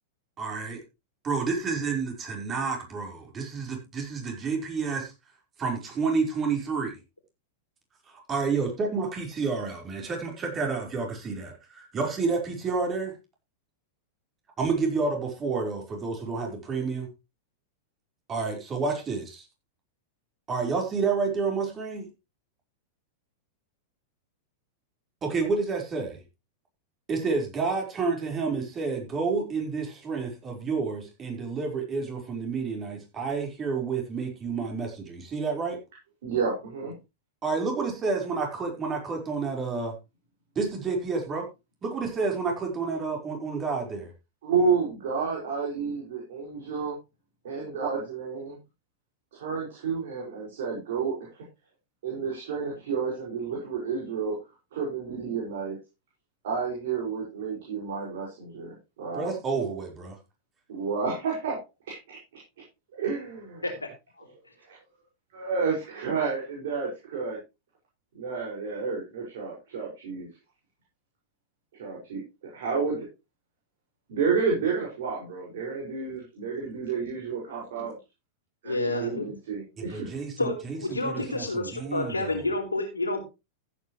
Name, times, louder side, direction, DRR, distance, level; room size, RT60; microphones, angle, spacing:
voice 1, 0.4-0.8 1.2-5.1 5.6-7.0 8.1-13.1 14.6-17.1 18.3-19.5 20.5-22.1 25.2-26.2 27.1-35.8 37.4-39.9 40.5-41.5 41.8-44.1 59.1-60.2 79.8-82.4, right 4 dB, 25° right, 1 dB, 4.8 m, -30 dB
voice 2, 36.2-36.9 44.4-47.0 47.4-48.6 49.3-51.1 52.0-54.3 54.7-55.8 56.4-59.3 60.7-61.6 61.9-62.2 62.9-63.5 65.3-67.4 68.1-70.3 71.8-72.2 72.5-73.0 74.1-77.9 78.6-80.1, right 5 dB, 60° right, -3 dB, 6.0 m, -30 dB
voice 3, 78.6-79.3 80.4-83.2, left 2 dB, 85° left, 2 dB, 4.3 m, -29 dB
15.0 x 9.3 x 3.2 m, 0.26 s
figure-of-eight pair, 95°, 0 cm